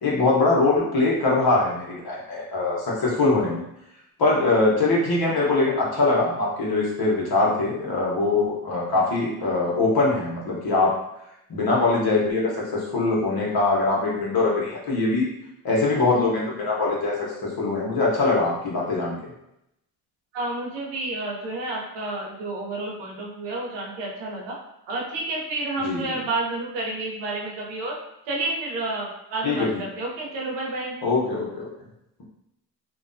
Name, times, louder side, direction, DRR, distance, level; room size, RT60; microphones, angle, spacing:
voice 1, 0.0-3.6 4.2-10.9 11.5-15.3 15.6-17.1 17.4-19.2 25.8-26.1 29.4-29.8 31.0-31.7, left 3 dB, 60° left, -4 dB, 1.1 m, -22 dB
voice 2, 20.3-24.6 24.9-27.9 28.3-31.0, right 2 dB, 85° right, -2 dB, 0.8 m, -30 dB
2.6 x 2.2 x 2.6 m, 0.82 s
supercardioid pair, 65°, 42 cm